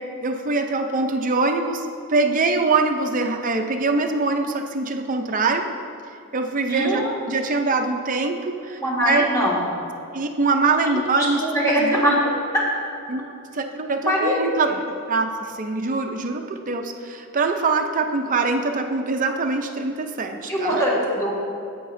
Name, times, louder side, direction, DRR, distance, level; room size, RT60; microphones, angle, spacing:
voice 1, 0.0-5.7 6.3-8.8 9.0-9.2 10.1-12.0 13.1-13.3 13.5-14.7 15.1-20.8, right 3 dB, 40° right, 4 dB, 0.6 m, -23 dB
voice 2, 6.7-7.1 8.8-9.6 10.9-12.2 12.5-12.6 14.1-14.3 14.6-14.7 20.5-21.3, equal, 15° left, -6 dB, 2.0 m, -22 dB
10.5 x 8.5 x 2.6 m, 2.6 s
head